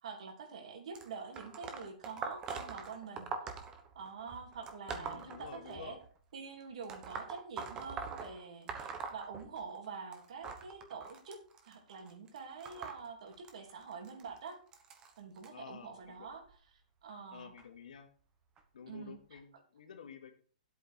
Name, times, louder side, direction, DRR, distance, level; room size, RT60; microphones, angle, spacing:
voice 1, 0.0-3.3 3.9-6.0 6.3-14.6 15.2-16.4 17.0-17.5 18.9-19.4, right 5 dB, 60° right, 3 dB, 3.2 m, -46 dB
sound 1, 0.9-6.1 6.8-9.9 10.1-15.5 16.3-16.5 17.6-17.7 18.6-18.7 19.4-19.5, right 5 dB, 15° right, 1.1 m, -44 dB
voice 2, 4.9-6.0 15.5-16.3 17.3-18.1 18.7-20.4, left 7 dB, 90° left, 5 dB, 2.3 m, -51 dB
9.9 x 8.3 x 4.7 m, 0.41 s
hypercardioid pair, 170°, 4 cm